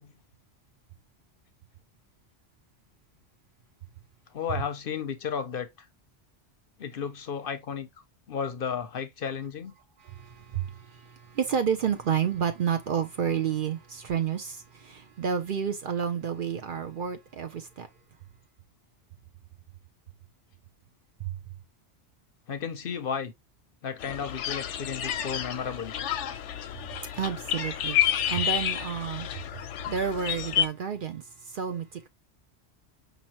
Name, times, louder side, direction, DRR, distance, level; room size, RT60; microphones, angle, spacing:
voice 1, 4.3-5.9 6.8-7.9 8.3-9.7 22.5-23.3 23.8-25.9, left 7 dB, 60° left, 0.7 m, -33 dB
voice 2, 10.0-17.9 27.2-29.3 29.9-31.2 31.5-32.1, right 7 dB, 60° right, 0.6 m, -30 dB
sound 1, 24.0-30.7, left 10 dB, 85° left, 0.9 m, -30 dB
5.3 x 2.9 x 2.9 m
omnidirectional pair, 1.2 m